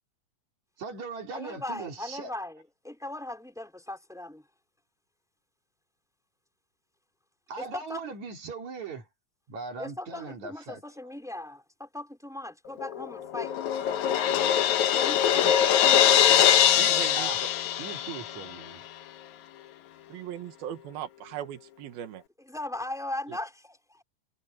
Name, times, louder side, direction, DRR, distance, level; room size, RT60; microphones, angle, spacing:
voice 1, 0.8-2.3 7.5-9.1 9.5-10.8 17.2-17.5 17.8-18.8, right 4 dB, 55° right, 4.2 m, -39 dB
voice 2, 1.3-4.4 7.6-8.1 9.8-13.5 14.9-16.2 22.4-24.0, left 1 dB, ahead, 3.9 m, -39 dB
Crash cymbal, 12.8-18.5, left 10 dB, 65° left, 2.1 m, -22 dB
voice 3, 16.7-17.3 20.1-22.2 23.3-23.4, right 11 dB, 85° right, 3.4 m, -38 dB
omnidirectional pair, 4.2 m